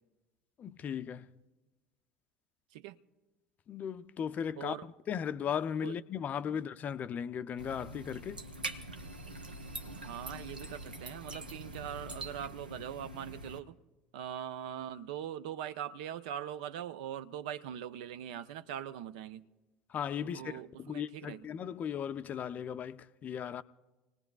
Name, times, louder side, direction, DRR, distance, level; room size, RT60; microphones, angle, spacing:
voice 1, 0.6-1.3 3.7-8.4 19.9-23.6, left 8 dB, 35° left, 0.5 m, -37 dB
voice 2, 4.6-4.9 5.8-5.9 9.9-13.8 14.1-19.4 20.3-21.5, right 10 dB, 60° right, 0.5 m, -41 dB
sound 1, 7.6-13.6, right 2 dB, 85° right, 0.8 m, -44 dB
26.5 x 19.0 x 2.4 m
figure-of-eight pair, 70°, 5 cm